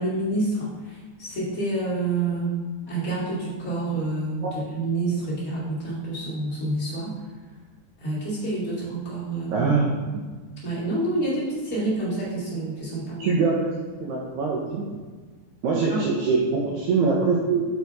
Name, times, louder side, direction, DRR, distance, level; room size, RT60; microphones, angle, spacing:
voice 1, 0.0-2.6 2.9-7.1 8.0-9.7 10.6-13.3 15.9-16.0, right 2 dB, 25° left, -9 dB, 1.6 m, -28 dB
voice 2, 9.5-9.9 13.2-13.7 14.0-14.9 15.6-17.6, right 4 dB, 90° right, -3 dB, 1.7 m, -23 dB
6.8 x 4.6 x 4.1 m, 1.4 s
omnidirectional pair, 4.3 m